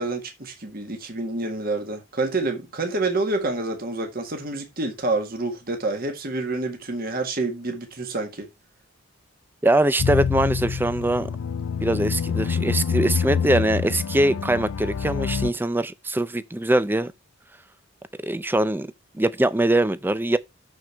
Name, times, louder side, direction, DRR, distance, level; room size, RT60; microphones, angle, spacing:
voice 1, 0.0-8.5, right 2 dB, 45° right, 1.6 m, -28 dB
voice 2, 9.6-11.3 11.8-17.1 18.2-18.9 19.2-20.4, right 1 dB, 10° right, 0.4 m, -22 dB
sound 1, 10.0-15.5, left 6 dB, 90° left, 0.5 m, -26 dB
6.7 x 6.3 x 4.5 m
head